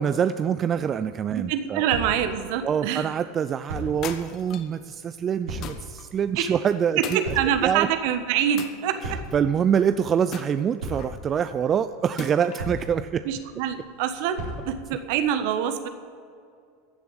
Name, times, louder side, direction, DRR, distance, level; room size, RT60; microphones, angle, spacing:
voice 1, 0.0-1.9 2.6-7.2 7.6-7.9 9.0-13.2, right 8 dB, 35° right, 12 dB, 0.4 m, -25 dB
sound 1, 0.7-15.2, right 1 dB, 85° right, 4.1 m, -40 dB
voice 2, 1.3-3.1 6.3-6.6 7.0-9.2 13.2-15.9, right 9 dB, 65° right, 9 dB, 1.3 m, -25 dB
sound 2, 4.0-4.8 5.6-6.1 7.0-7.9 8.6-9.3 10.3-11.2 12.2-12.7, left 9 dB, 45° left, 1.2 m, -39 dB
15.5 x 7.0 x 8.9 m, 2.3 s
hypercardioid pair, 90°, 0 cm